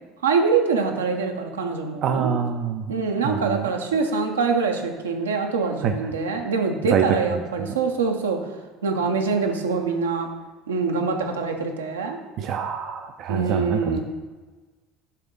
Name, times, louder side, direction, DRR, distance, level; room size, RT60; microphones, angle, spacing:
voice 1, 0.2-2.3 2.9-8.4 8.8-10.3 10.7-12.2 13.3-14.0, right 4 dB, 80° right, 3 dB, 0.7 m, -24 dB
voice 2, 2.0-2.9 3.2-3.7 5.8-5.9 6.9-7.7 12.4-14.0, right 7 dB, 50° right, 5 dB, 0.4 m, -26 dB
6.9 x 3.6 x 5.3 m, 1.3 s
figure-of-eight pair, 65°, 0 cm